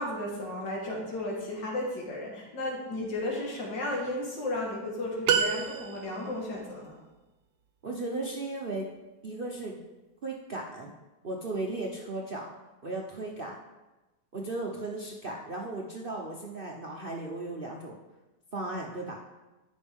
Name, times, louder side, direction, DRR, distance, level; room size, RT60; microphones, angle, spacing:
voice 1, 0.0-7.0, left 1 dB, 75° left, -3 dB, 2.4 m, -34 dB
sound 1, 5.3-6.4, right 7 dB, 70° right, 1.1 m, -27 dB
voice 2, 7.8-8.9 9.2-9.8 10.2-10.9 11.2-12.5 12.8-13.5 14.3-18.0 18.5-19.2, right 2 dB, 50° right, -1 dB, 0.6 m, -36 dB
14.0 x 5.3 x 3.5 m, 1.1 s
omnidirectional pair, 1.9 m